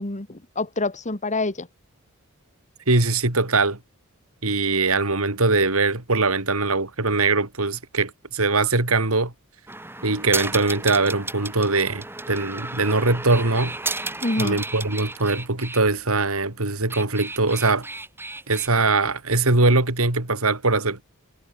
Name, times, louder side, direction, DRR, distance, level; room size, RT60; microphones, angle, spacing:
voice 1, 0.0-1.7 14.2-14.6, left 2 dB, 35° left, 2.1 m, -27 dB
voice 2, 2.9-3.8 4.4-9.3 10.0-13.7 14.4-17.9 18.5-21.0, right 3 dB, 90° right, 3.5 m, -22 dB
sound 1, 9.7-15.8 16.7-18.7, right 2 dB, 10° right, 2.5 m, -33 dB
head